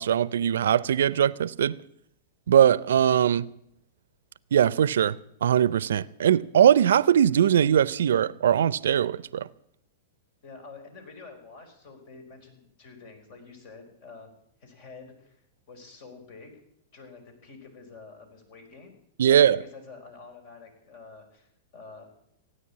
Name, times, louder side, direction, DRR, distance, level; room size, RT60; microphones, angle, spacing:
voice 1, 0.0-1.8 2.5-3.5 4.5-9.5 19.2-19.6, right 9 dB, 75° right, 0.5 m, -21 dB
voice 2, 10.4-14.3 14.6-15.4 15.7-16.6 16.9-22.1, left 4 dB, 55° left, 4.9 m, -48 dB
16.5 x 9.8 x 8.6 m
hypercardioid pair, 110°, 0 cm